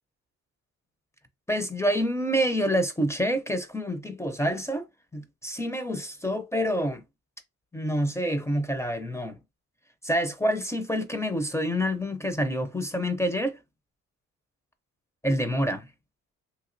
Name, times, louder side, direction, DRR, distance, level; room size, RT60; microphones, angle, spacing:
voice 1, 1.5-4.9 5.1-7.0 7.7-9.4 10.0-13.6 15.2-15.9, equal, 10° left, 0.4 m, -27 dB
3.0 x 2.6 x 2.5 m
cardioid pair, 90°, 30 cm